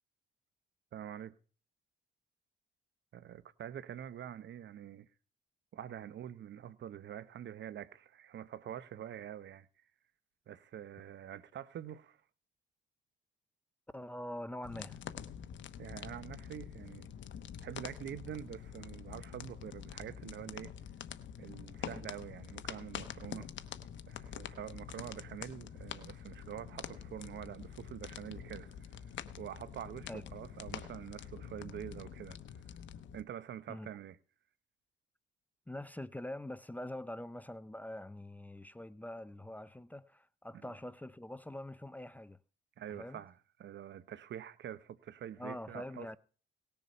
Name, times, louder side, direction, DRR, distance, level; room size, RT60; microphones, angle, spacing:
voice 1, 0.9-1.3 3.1-5.1 5.7-9.7 10.5-12.2 15.8-17.1 17.6-20.7 21.4-23.5 24.1-32.4 33.1-34.2 42.8-46.2, right 10 dB, 65° right, 1.0 m, -46 dB
voice 2, 13.9-15.0 30.1-30.2 33.7-33.9 35.7-42.4 43.0-43.2 45.4-46.2, left 1 dB, 10° left, 0.6 m, -44 dB
sound 1, 14.6-33.2, left 9 dB, 70° left, 1.1 m, -46 dB
18.0 x 7.0 x 5.5 m
cardioid pair, 90°, 20 cm